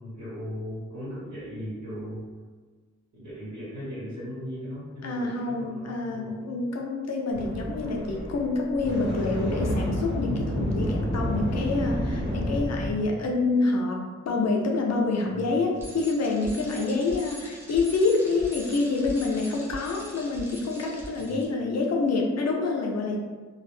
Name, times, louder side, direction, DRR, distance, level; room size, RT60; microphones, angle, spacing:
voice 1, 0.0-2.3 3.1-6.6 15.3-16.0 21.2-21.4, equal, 90° right, -12 dB, 1.1 m, -38 dB
voice 2, 5.0-23.2, left 3 dB, 60° left, 0 dB, 0.5 m, -27 dB
sound 1, 7.3-12.9, equal, 40° right, 0.7 m, -29 dB
Bicycle, 15.8-21.5, equal, 10° right, 0.5 m, -42 dB
2.3 x 2.0 x 3.2 m, 1.4 s
wide cardioid pair, 135°, 29 cm